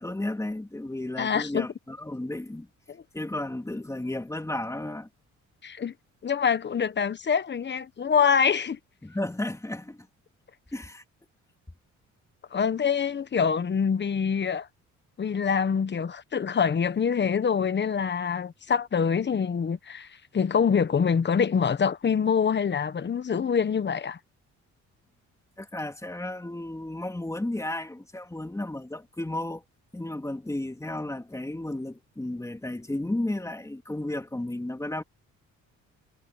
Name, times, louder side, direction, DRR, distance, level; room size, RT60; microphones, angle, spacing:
voice 1, 0.0-2.7 3.1-5.1 9.0-10.1 10.7-11.0 25.6-29.6 29.9-35.0, left 1 dB, 10° left, 2.2 m, -33 dB
voice 2, 1.2-1.7 2.9-3.0 5.6-5.9 6.2-8.8 12.5-14.7 15.2-20.1 20.3-24.2, left 6 dB, 35° left, 1.2 m, -25 dB
cardioid pair, 90°, 30 cm